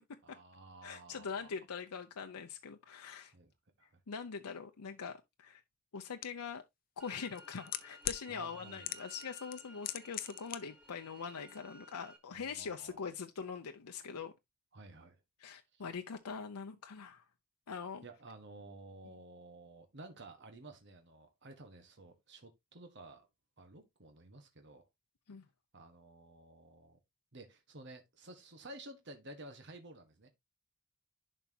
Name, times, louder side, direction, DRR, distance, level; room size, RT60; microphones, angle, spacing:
voice 1, 0.2-1.5 3.3-3.5 3.8-4.0 8.3-8.9 12.3-13.0 14.7-15.2 15.7-15.8 18.0-23.3 23.6-24.8 25.7-27.0 27.3-30.3, right 2 dB, 50° right, 1.4 m, -53 dB
voice 2, 0.8-3.3 4.1-5.6 5.9-6.6 7.0-14.3 15.4-17.2 17.7-18.0 25.3-25.4, left 6 dB, 90° left, 0.6 m, -43 dB
sound 1, 6.2-6.3 7.2-8.2 8.8-9.2 9.5-10.6 10.8-10.9, left 12 dB, 40° left, 0.6 m, -38 dB
sound 2, 7.0-12.2, right 1 dB, 5° right, 1.2 m, -56 dB
11.0 x 4.6 x 2.8 m
head